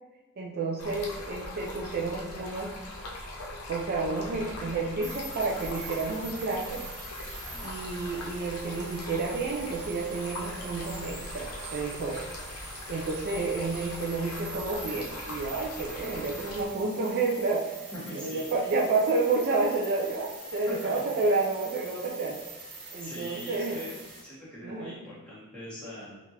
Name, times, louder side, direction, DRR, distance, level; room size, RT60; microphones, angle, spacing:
voice 1, 0.4-2.8 3.7-6.8 7.6-12.2 12.9-17.8 18.1-22.4 22.9-23.8 24.6-25.0, right 3 dB, 45° right, -2 dB, 0.4 m, -30 dB
Stream, 0.8-16.7, left 1 dB, 70° left, 0.6 m, -41 dB
sound 1, 5.0-24.2, right 2 dB, 85° right, 1.1 m, -44 dB
voice 2, 16.0-16.8 17.9-18.7 20.7-21.3 23.0-23.9 24.2-26.2, equal, 5° left, -9 dB, 1.1 m, -43 dB
3.5 x 2.5 x 2.8 m, 1.2 s
head